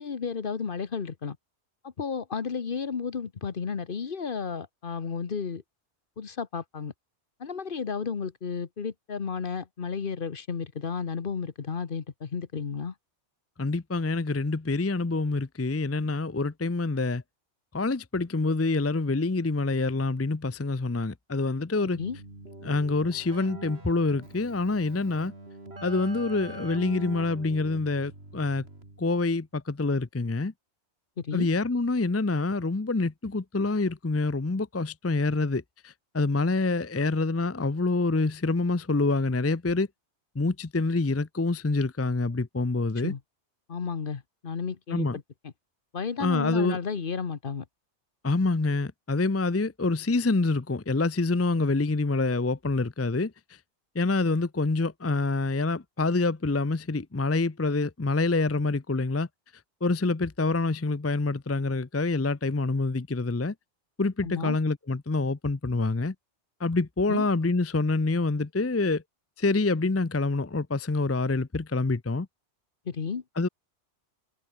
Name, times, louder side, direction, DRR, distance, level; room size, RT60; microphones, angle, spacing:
voice 1, 0.0-1.4 1.8-5.6 6.2-6.9 7.4-12.9 22.0-22.2 31.2-31.5 43.0-43.2 43.7-45.1 45.4-45.5 45.9-47.6 64.2-64.6 67.1-67.3 72.9-73.2, left 6 dB, 50° left, 1.3 m, -33 dB
voice 2, 13.6-17.2 17.7-22.0 22.6-25.3 25.8-28.6 29.0-30.5 31.3-39.9 40.4-43.1 44.9-45.2 46.2-46.8 48.2-53.3 53.9-59.3 59.8-63.5 64.0-66.1 66.6-69.0 69.4-72.3 73.4-73.5, left 3 dB, 15° left, 0.5 m, -26 dB
Keyboard (musical), 21.9-29.2, right 2 dB, 65° right, 5.2 m, -44 dB
omnidirectional pair, 1.2 m